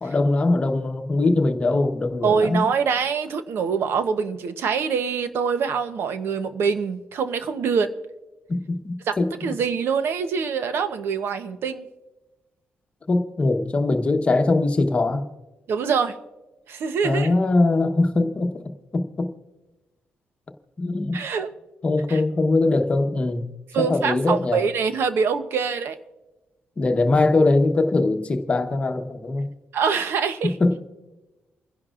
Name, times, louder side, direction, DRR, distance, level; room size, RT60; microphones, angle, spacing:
voice 1, 0.0-2.7 8.5-9.3 13.1-15.3 17.0-18.5 18.9-19.3 20.8-21.2 21.8-23.5 23.8-24.6 26.8-29.5 30.6-30.8, left 2 dB, 30° left, 1.0 m, -21 dB
voice 2, 2.2-7.9 9.0-11.9 15.7-16.2 16.7-17.3 21.1-21.5 22.1-22.2 23.7-26.0 29.7-30.6, right 6 dB, 75° right, 0.9 m, -24 dB
28.5 x 10.5 x 2.5 m
cardioid pair, 135°, 4 cm